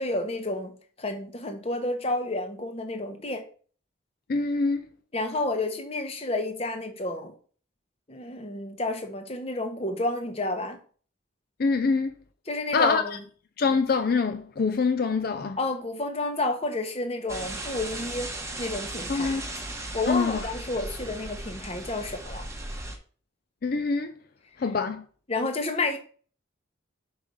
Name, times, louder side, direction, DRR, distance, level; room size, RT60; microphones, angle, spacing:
voice 1, 0.0-3.4 5.1-7.3 8.1-10.8 12.5-13.2 15.6-18.3 18.6-19.4 19.9-22.5 25.3-26.0, left 2 dB, 30° left, 1.0 m, -30 dB
voice 2, 4.3-4.8 11.6-12.1 12.7-13.2 13.6-15.6 19.1-19.5 20.1-20.5 23.6-24.1 24.6-25.0, left 4 dB, 50° left, 0.4 m, -25 dB
sound 1, 17.3-23.0, right 1 dB, 15° right, 1.0 m, -37 dB
5.4 x 4.9 x 5.3 m
head